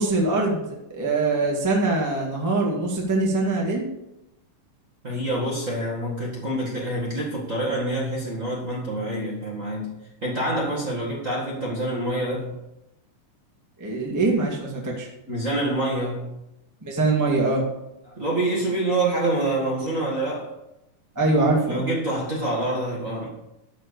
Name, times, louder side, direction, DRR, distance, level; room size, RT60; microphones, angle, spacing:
voice 1, 0.0-3.9 13.8-15.1 16.8-17.6 21.1-21.9, right 2 dB, 10° right, -2 dB, 1.3 m, -23 dB
voice 2, 5.0-9.9 10.2-12.5 15.3-16.3 18.1-20.5 21.7-23.3, right 1 dB, 30° right, -5 dB, 1.7 m, -26 dB
12.5 x 4.6 x 6.8 m, 0.90 s
omnidirectional pair, 3.7 m